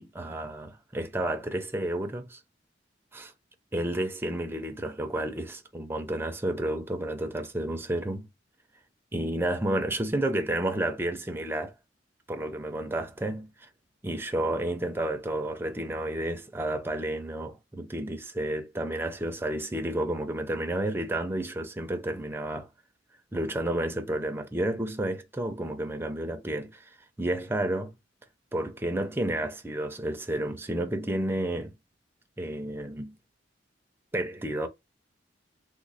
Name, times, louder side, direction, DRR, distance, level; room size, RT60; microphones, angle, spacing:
voice 1, 0.0-2.4 3.1-3.3 3.7-8.3 9.1-11.7 12.3-13.7 14.0-22.7 23.3-26.9 27.2-27.9 28.5-31.7 32.4-33.1 34.1-34.7, right 1 dB, 10° right, 0.5 m, -31 dB
3.0 x 2.1 x 3.9 m
head